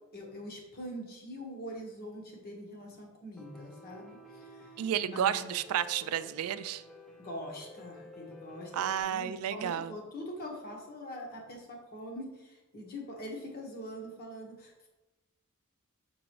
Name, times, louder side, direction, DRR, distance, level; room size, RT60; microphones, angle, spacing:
voice 1, 0.1-5.5 7.2-14.9, equal, 45° left, 1 dB, 1.4 m, -43 dB
Piano, 3.4-9.0, left 2 dB, ahead, 0.6 m, -51 dB
voice 2, 4.8-6.8 8.7-9.9, right 9 dB, 80° right, 14 dB, 0.3 m, -31 dB
6.1 x 6.0 x 3.1 m, 1.0 s
head